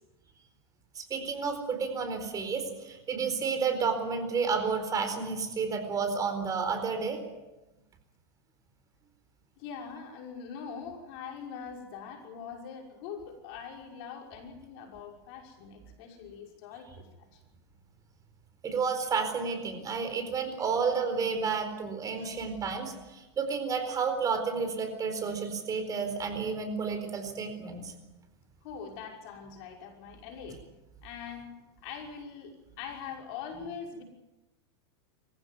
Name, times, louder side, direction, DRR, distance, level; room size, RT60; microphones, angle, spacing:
voice 1, 0.9-7.2 18.6-27.9, right 5 dB, 25° right, 6 dB, 4.3 m, -31 dB
voice 2, 9.6-17.4 22.2-22.3 28.6-30.6 31.0-31.5 31.8-34.0, left 6 dB, 60° left, 2 dB, 6.0 m, -43 dB
24.5 x 15.5 x 9.5 m, 1.0 s
supercardioid pair, 130°, 14 cm